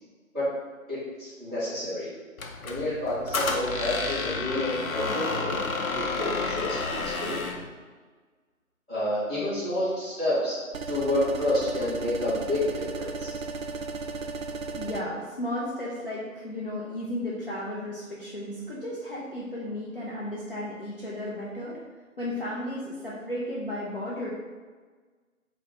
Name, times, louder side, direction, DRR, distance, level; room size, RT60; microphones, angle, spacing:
voice 1, 0.9-2.1 2.6-5.6 5.9-7.4 8.9-10.6 10.9-13.3, left 1 dB, 5° left, -16 dB, 1.0 m, -29 dB
Squeak, 2.4-7.7, left 3 dB, 90° left, 0.6 m, -30 dB
sound 1, 10.7-15.0, right 4 dB, 75° right, 0.5 m, -35 dB
voice 2, 14.7-21.8 22.2-24.3, left 1 dB, 40° left, -7 dB, 0.5 m, -34 dB
4.3 x 2.1 x 4.0 m, 1.4 s
figure-of-eight pair, 165°, 41 cm